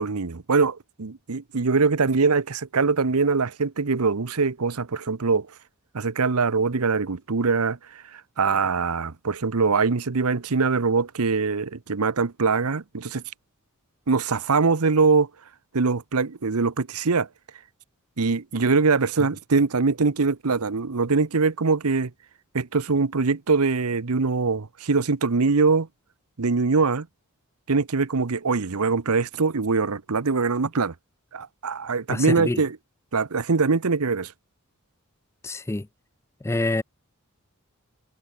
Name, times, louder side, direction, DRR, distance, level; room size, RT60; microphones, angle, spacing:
voice 1, 0.0-5.5 5.9-7.8 8.4-13.2 14.1-15.3 15.7-17.3 18.2-22.1 22.5-25.9 26.4-27.1 27.7-30.9 31.3-32.8 33.1-34.3, right 4 dB, 80° right, 0.9 m, -23 dB
voice 2, 32.1-32.6 35.4-35.9 36.4-36.8, left 2 dB, 10° left, 0.4 m, -26 dB
head